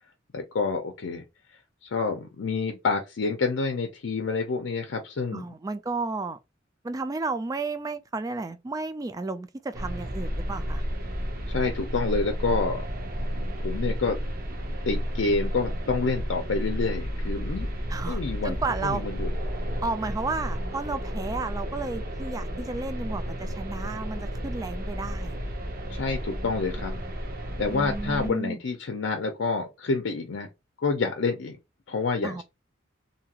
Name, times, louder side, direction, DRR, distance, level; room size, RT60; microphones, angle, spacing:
voice 1, 0.3-1.2 1.8-5.4 11.5-12.9 13.6-14.2 14.8-17.7 18.1-19.3 25.9-27.0 27.6-30.5 30.8-31.6 31.9-32.4, left 4 dB, 80° left, 0.5 m, -28 dB
voice 2, 5.3-6.4 6.8-10.8 17.9-19.0 19.8-25.4 27.7-28.6 32.2-32.4, right 3 dB, 20° right, 0.3 m, -32 dB
sound 1, 9.7-28.3, equal, 50° right, 0.7 m, -32 dB
2.7 x 2.4 x 2.8 m
head